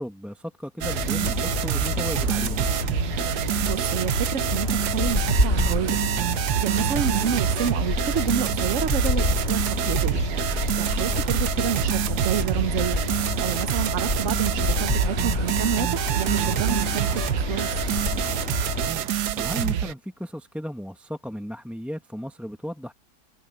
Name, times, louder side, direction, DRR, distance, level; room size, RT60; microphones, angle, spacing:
voice 1, 0.0-2.7 18.7-22.9, equal, ahead, 1.1 m, -35 dB
sound 1, 0.8-18.9, left 2 dB, 40° left, 2.7 m, -28 dB
sound 2, 0.8-19.9, right 10 dB, 75° right, 1.4 m, -27 dB
voice 2, 3.6-10.2 10.5-13.0 13.4-17.8, right 9 dB, 55° right, 1.1 m, -29 dB
omnidirectional pair, 1.7 m